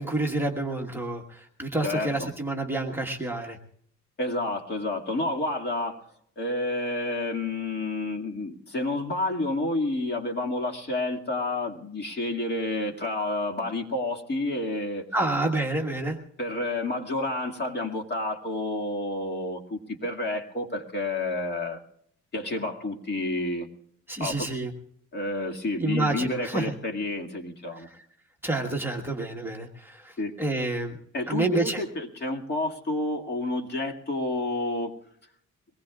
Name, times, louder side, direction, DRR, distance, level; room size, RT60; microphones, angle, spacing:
voice 1, 0.0-3.6 15.1-16.2 24.1-24.7 25.8-26.7 27.8-28.0 28.4-31.0 31.3-31.8, right 2 dB, 5° right, 1 dB, 1.4 m, -29 dB
voice 2, 1.8-2.3 4.2-6.0 6.4-15.1 16.4-21.8 22.3-23.7 24.2-24.5 25.1-27.9 30.2-30.3 31.1-34.9, left 2 dB, 35° left, 2 dB, 2.2 m, -29 dB
23.0 x 19.5 x 2.4 m, 0.65 s
cardioid pair, 155°, 30 cm